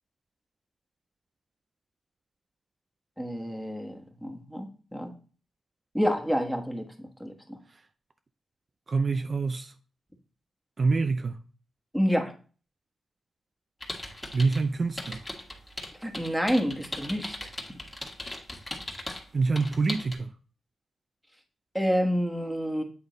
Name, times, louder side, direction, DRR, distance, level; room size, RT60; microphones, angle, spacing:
voice 1, 3.2-5.1 5.9-7.6 11.9-12.3 16.0-17.5 21.7-22.8, equal, ahead, 1.2 m, -28 dB
voice 2, 8.9-9.7 10.8-11.4 14.3-15.2 19.3-20.3, right 4 dB, 45° right, 0.4 m, -26 dB
sound 1, 13.8-14.6 15.0-19.2 19.6-20.1, left 1 dB, 15° left, 1.5 m, -38 dB
8.3 x 3.5 x 3.9 m
cardioid pair, 75°, 0 cm